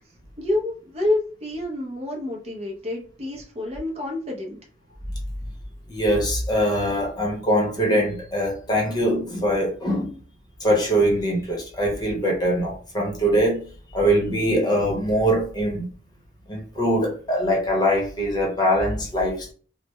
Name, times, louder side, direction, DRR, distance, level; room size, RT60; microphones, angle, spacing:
voice 1, 0.4-4.6, left 1 dB, 35° right, 0.7 m, -28 dB
voice 2, 5.9-10.1 10.6-13.6 13.9-15.9 16.5-19.5, equal, 20° left, 0.8 m, -22 dB
3.2 x 2.1 x 3.1 m
head